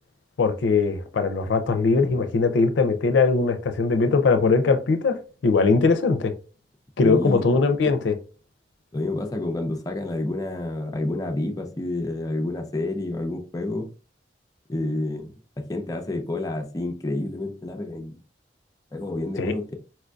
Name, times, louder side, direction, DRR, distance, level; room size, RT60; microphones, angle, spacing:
voice 1, 0.4-6.3 7.0-8.2 19.4-19.5, left 4 dB, 85° left, 0.4 m, -21 dB
voice 2, 7.0-7.4 8.9-13.9 14.7-18.2 18.9-19.7, left 2 dB, 20° left, 0.4 m, -29 dB
4.3 x 2.5 x 2.2 m
head